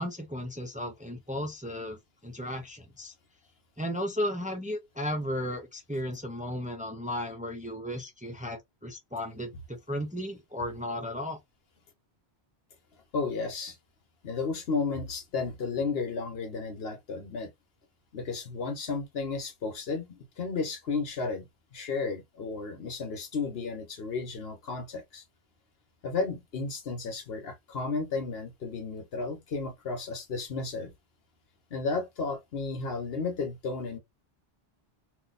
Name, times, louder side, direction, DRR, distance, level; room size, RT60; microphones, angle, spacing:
voice 1, 0.0-3.1 3.8-11.4, left 1 dB, 10° right, 0.5 m, -35 dB
voice 2, 13.1-13.8 14.2-17.5 18.1-21.4 21.7-25.2 26.0-30.9 31.7-34.0, left 4 dB, 70° left, 1.2 m, -33 dB
2.8 x 2.1 x 4.0 m
omnidirectional pair, 1.1 m